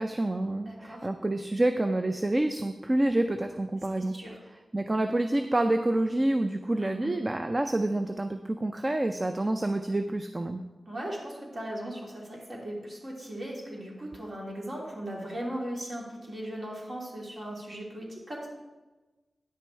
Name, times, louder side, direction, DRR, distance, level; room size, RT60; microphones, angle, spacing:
voice 1, 0.0-4.2 4.7-10.6, right 1 dB, 35° right, 7 dB, 0.5 m, -28 dB
voice 2, 0.6-1.1 4.1-4.4 6.8-7.1 10.9-18.5, right 1 dB, 50° right, -3 dB, 2.9 m, -38 dB
9.8 x 6.0 x 4.6 m, 1.2 s
cardioid pair, 40°, 0 cm